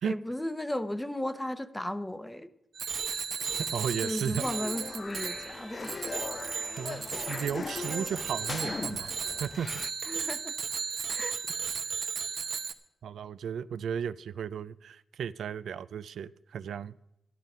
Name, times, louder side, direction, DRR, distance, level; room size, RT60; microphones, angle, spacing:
voice 1, 0.0-2.5 4.0-6.0 10.0-10.6 11.1-11.4, left 1 dB, 10° left, 12 dB, 0.9 m, -35 dB
Bicycle bell, 2.7-12.7, right 6 dB, 70° right, 0.8 m, -35 dB
sound 1, 3.4-9.9, left 4 dB, 45° left, 0.4 m, -40 dB
voice 2, 3.6-4.4 6.8-9.1 9.4-9.7 11.9-12.1 13.0-16.9, right 8 dB, 85° right, 15 dB, 0.4 m, -35 dB
12.0 x 11.0 x 5.4 m, 0.87 s
cardioid pair, 80°, 0 cm